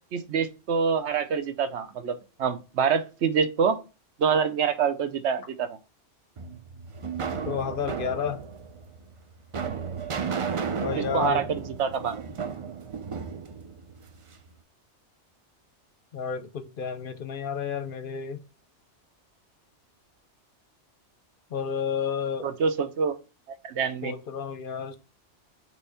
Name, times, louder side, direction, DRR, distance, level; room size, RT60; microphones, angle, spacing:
voice 1, 0.1-3.8 4.2-5.7 11.0-12.2 22.4-23.1 23.6-24.1, right 6 dB, 70° right, 1.0 m, -26 dB
sound 1, 6.4-14.5, right 6 dB, 50° right, 0.3 m, -34 dB
voice 2, 7.4-8.4 10.8-11.4 16.1-18.4 21.5-22.5 24.0-25.0, left 7 dB, 55° left, 0.7 m, -31 dB
6.2 x 3.1 x 5.5 m
omnidirectional pair, 1.2 m